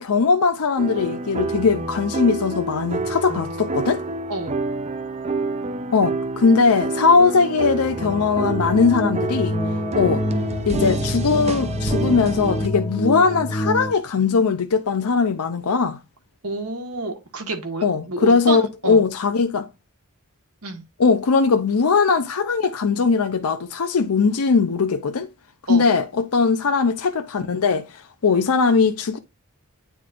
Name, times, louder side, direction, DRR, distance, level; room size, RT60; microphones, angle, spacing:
voice 1, 0.0-4.0 5.9-9.6 9.9-10.2 10.7-16.0 17.8-19.7 21.0-25.3 25.7-29.2, left 4 dB, 75° left, 0.6 m, -20 dB
sound 1, 0.8-12.7, right 3 dB, 30° right, 0.5 m, -28 dB
voice 2, 4.3-4.6 16.4-19.0 20.6-20.8 25.7-25.9, right 2 dB, 75° right, 1.6 m, -29 dB
sound 2, 7.9-13.9, left 1 dB, 20° left, 0.6 m, -27 dB
9.2 x 4.2 x 2.5 m
head